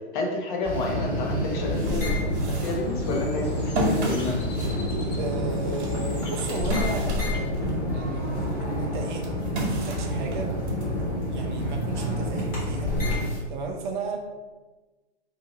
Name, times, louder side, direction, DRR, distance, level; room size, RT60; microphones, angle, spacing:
voice 1, 0.1-2.1 2.5-4.4, left 2 dB, 45° left, 0 dB, 0.9 m, -29 dB
sound 1, 0.6-13.4, left 1 dB, 25° left, 1.5 m, -28 dB
sound 2, 1.4-7.8 8.3-10.9, right 1 dB, 60° right, 1.4 m, -33 dB
Bird, 2.5-7.5, left 2 dB, 85° left, 1.3 m, -45 dB
voice 2, 5.1-11.0 11.3-12.9 13.5-14.2, right 4 dB, 45° right, 2 dB, 0.6 m, -35 dB
2.8 x 2.7 x 4.0 m, 1.2 s
hypercardioid pair, 140°, 35 cm